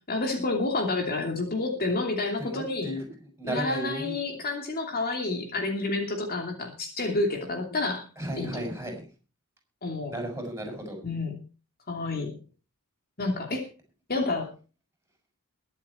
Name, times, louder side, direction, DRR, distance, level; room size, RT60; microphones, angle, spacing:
voice 1, 0.1-2.9 3.4-8.0 8.4-8.7 9.8-10.1 11.0-11.3 11.9-12.3 13.2-13.7 14.1-14.5, left 2 dB, 45° left, 2 dB, 2.8 m, -29 dB
voice 2, 2.4-4.2 8.2-9.1 10.1-11.0, right 1 dB, 10° right, 3 dB, 6.4 m, -34 dB
22.5 x 7.9 x 4.4 m, 0.34 s
head